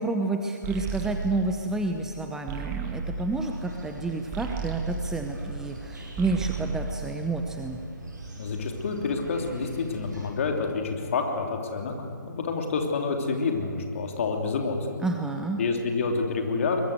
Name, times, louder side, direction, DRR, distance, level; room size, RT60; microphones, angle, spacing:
voice 1, 0.0-7.8 15.0-15.6, right 2 dB, 5° right, 4 dB, 0.8 m, -30 dB
sound 1, 0.6-5.8 6.1-7.8, right 5 dB, 20° right, 2.0 m, -35 dB
sound 2, 3.3-10.3, right 2 dB, 65° right, 6.3 m, -42 dB
voice 2, 8.4-14.8 15.6-16.8, left 4 dB, 40° left, 3 dB, 3.2 m, -28 dB
23.0 x 21.5 x 8.0 m, 2.3 s
figure-of-eight pair, 135°, 10 cm